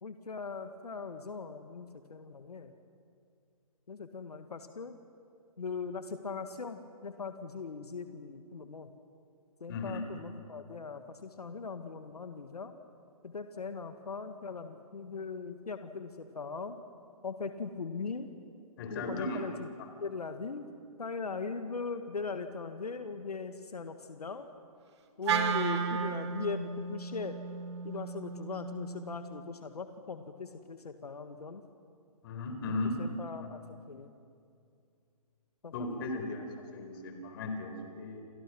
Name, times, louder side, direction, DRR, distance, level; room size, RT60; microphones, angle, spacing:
voice 1, 0.0-2.7 3.9-5.0 5.6-8.9 9.6-12.7 13.2-16.8 17.2-18.3 18.9-19.7 20.0-20.7 21.0-24.5 25.2-27.4 27.8-31.6 33.0-33.6 33.9-34.1 35.6-35.7, left 4 dB, 90° left, 7 dB, 1.7 m, -40 dB
voice 2, 9.7-10.0 18.8-19.4 32.2-33.0 35.7-36.5 36.7-38.2, left 2 dB, 40° left, 5 dB, 4.2 m, -36 dB
Wind instrument woodwind instrument, 25.2-29.5, right 6 dB, 45° right, 2.1 m, -34 dB
30.0 x 25.5 x 6.1 m, 2.4 s
hypercardioid pair, 150°, 19 cm